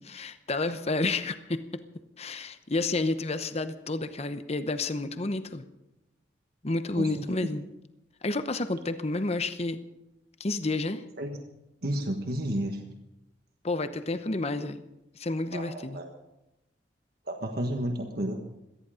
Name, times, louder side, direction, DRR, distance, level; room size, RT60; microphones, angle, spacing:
voice 1, 0.1-1.8 2.2-5.6 6.6-7.7 8.2-9.8 10.4-11.0 13.6-14.8 15.1-16.0, left 2 dB, 35° left, 11 dB, 0.9 m, -30 dB
voice 2, 11.8-12.8 15.5-16.1 17.3-18.4, right 1 dB, 55° right, 3 dB, 1.5 m, -31 dB
18.0 x 14.0 x 5.1 m, 0.91 s
head